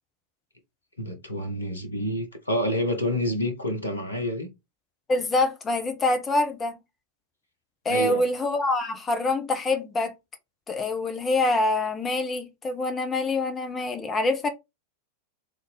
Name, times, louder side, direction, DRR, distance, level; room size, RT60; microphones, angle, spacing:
voice 1, 1.0-4.5 7.9-8.2, equal, 80° left, 1.2 m, -28 dB
voice 2, 5.1-6.8 7.8-10.1 10.7-14.5, left 2 dB, 20° left, 1.1 m, -25 dB
3.9 x 3.8 x 3.4 m
figure-of-eight pair, 90°, 0 cm